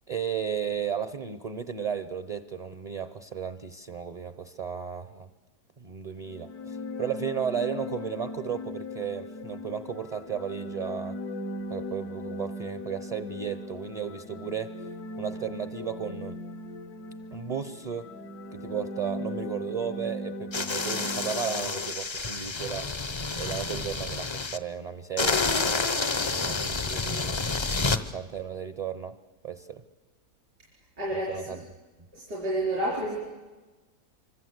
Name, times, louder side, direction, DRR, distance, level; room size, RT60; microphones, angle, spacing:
voice 1, 0.1-5.3 5.8-11.2 11.7-14.8 15.2-16.4 17.3-18.1 18.5-22.9 23.4-25.9 26.3-27.3 27.8-29.2 29.4-29.8 31.1-31.6, right 7 dB, 35° right, 11 dB, 0.7 m, -34 dB
sound 1, 6.2-21.9, left 1 dB, 70° left, 1.5 m, -38 dB
sound 2, 20.5-24.6 25.2-28.0, left 4 dB, 30° left, 0.5 m, -29 dB
voice 2, 31.0-31.6 32.1-33.2, right 1 dB, 85° right, -5 dB, 5.4 m, -30 dB
26.0 x 25.0 x 8.1 m, 1.2 s
omnidirectional pair, 1.7 m